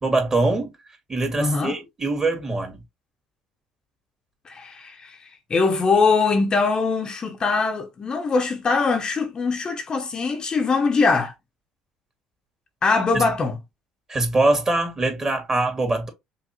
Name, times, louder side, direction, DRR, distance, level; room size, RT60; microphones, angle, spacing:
voice 1, 0.0-0.7 1.1-2.8 13.1-13.2 14.1-16.1, right 2 dB, 25° right, 2.3 m, -23 dB
voice 2, 1.4-1.8 4.4-11.3 12.8-13.6, left 4 dB, 35° left, 1.0 m, -22 dB
4.9 x 3.2 x 3.0 m
hypercardioid pair, 60°, 2 cm